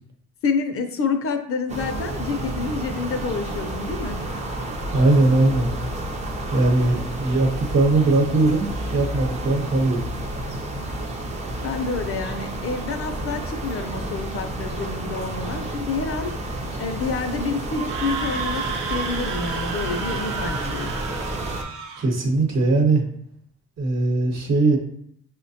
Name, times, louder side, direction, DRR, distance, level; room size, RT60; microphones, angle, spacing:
voice 1, 0.4-4.2 11.6-16.4 16.8-20.9, left 4 dB, 50° left, 6 dB, 0.5 m, -28 dB
sound 1, 1.7-21.6, right 1 dB, 25° right, 0.4 m, -30 dB
voice 2, 4.9-5.7 6.5-10.0 22.0-23.0 23.8-24.8, right 2 dB, 60° right, 2 dB, 0.9 m, -20 dB
Screaming, 17.7-22.1, right 5 dB, 85° right, 0.6 m, -31 dB
5.3 x 2.1 x 2.7 m, 0.70 s
cardioid pair, 90°, 30 cm